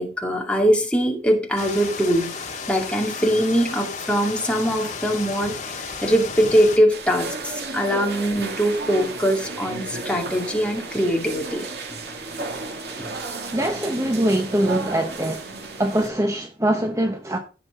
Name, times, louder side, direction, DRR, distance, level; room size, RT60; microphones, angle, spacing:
voice 1, 0.0-2.4 2.7-5.5 6.0-12.0 12.4-12.5 13.0-13.1, equal, 5° left, 2.3 m, -22 dB
sound 1, 1.6-6.8, left 5 dB, 40° left, 2.1 m, -33 dB
sound 2, 6.9-16.1, right 3 dB, 70° right, 2.4 m, -33 dB
voice 2, 13.5-15.5 15.8-17.4, right 1 dB, 15° right, 0.9 m, -23 dB
16.5 x 6.0 x 3.7 m
head